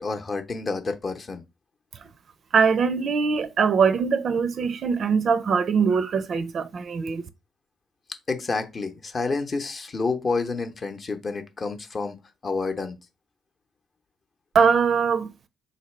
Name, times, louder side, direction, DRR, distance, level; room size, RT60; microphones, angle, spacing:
voice 1, 0.0-1.4 8.3-13.0, left 4 dB, 40° left, 0.7 m, -29 dB
voice 2, 2.5-7.3 14.5-15.3, right 6 dB, 50° right, 0.4 m, -22 dB
3.7 x 2.7 x 3.2 m
figure-of-eight pair, 45°, 0 cm